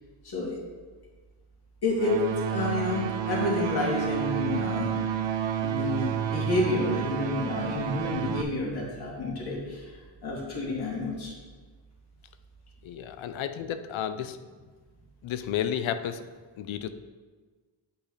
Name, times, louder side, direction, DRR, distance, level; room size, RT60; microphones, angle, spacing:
voice 1, 0.2-0.6 1.8-5.1 5.6-9.9 10.2-11.3 13.3-13.4, left 2 dB, 55° left, -4 dB, 2.7 m, -29 dB
sound 1, 2.0-8.4, right 9 dB, 70° right, 0.7 m, -30 dB
voice 2, 12.8-14.4 15.2-16.2 16.6-16.9, left 9 dB, 85° left, 11 dB, 0.7 m, -32 dB
8.7 x 8.4 x 3.3 m, 1.4 s
wide cardioid pair, 145°, 46 cm